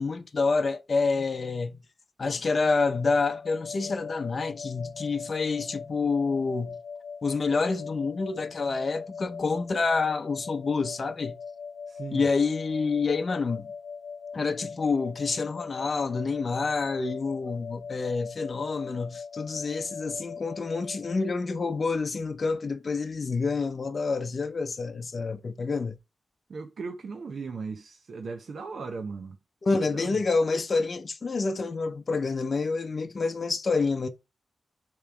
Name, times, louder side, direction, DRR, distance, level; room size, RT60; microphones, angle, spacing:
voice 1, 0.0-1.8 2.2-6.8 7.2-11.4 12.1-13.7 14.3-26.0 29.6-34.1, left 4 dB, 45° left, 0.7 m, -28 dB
sound 1, 2.7-21.3, left 5 dB, 25° left, 1.1 m, -40 dB
voice 2, 11.9-12.3 26.5-29.4 29.9-30.2, right 4 dB, 65° right, 0.7 m, -37 dB
6.8 x 3.1 x 4.9 m
wide cardioid pair, 140°, 0 cm